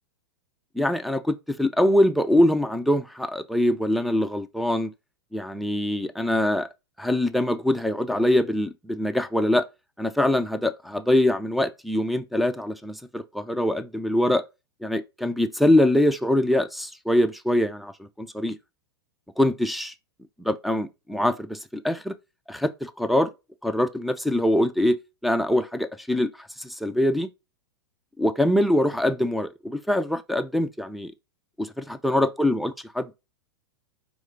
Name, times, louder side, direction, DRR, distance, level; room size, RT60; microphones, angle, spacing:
voice 1, 0.8-4.9 5.3-6.7 7.0-9.7 10.0-14.4 14.8-18.6 19.4-19.9 20.4-22.2 22.5-23.3 23.6-25.0 25.2-27.3 28.2-31.1 31.6-32.7, left 1 dB, ahead, 0.3 m, -23 dB
4.8 x 2.5 x 2.9 m
figure-of-eight pair, 100°, 13 cm